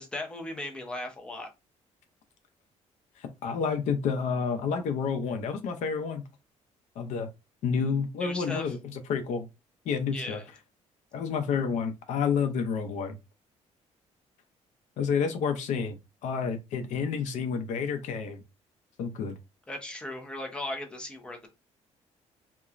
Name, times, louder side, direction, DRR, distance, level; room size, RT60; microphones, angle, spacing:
voice 1, 0.0-1.5 8.2-8.7 10.1-10.5 19.7-21.5, left 1 dB, 10° left, 0.6 m, -37 dB
voice 2, 3.2-6.2 7.0-7.3 7.6-9.5 9.9-10.4 11.1-13.1 15.0-18.4 19.0-19.4, left 6 dB, 75° left, 0.5 m, -29 dB
3.0 x 2.1 x 2.4 m
cardioid pair, 150°, 12 cm